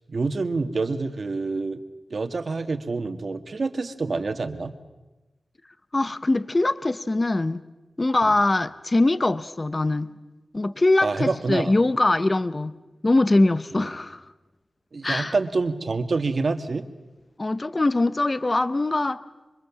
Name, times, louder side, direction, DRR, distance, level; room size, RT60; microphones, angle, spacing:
voice 1, 0.1-1.8 2.1-4.7 8.2-8.3 11.0-11.7 13.7-13.9 14.9-16.9, right 3 dB, 60° right, 8 dB, 1.9 m, -27 dB
voice 2, 5.9-7.6 8.0-10.2 10.5-14.2 15.0-15.3 17.4-19.2, left 2 dB, 35° left, 14 dB, 0.8 m, -22 dB
27.5 x 24.5 x 7.4 m, 1.1 s
wide cardioid pair, 85°, 0 cm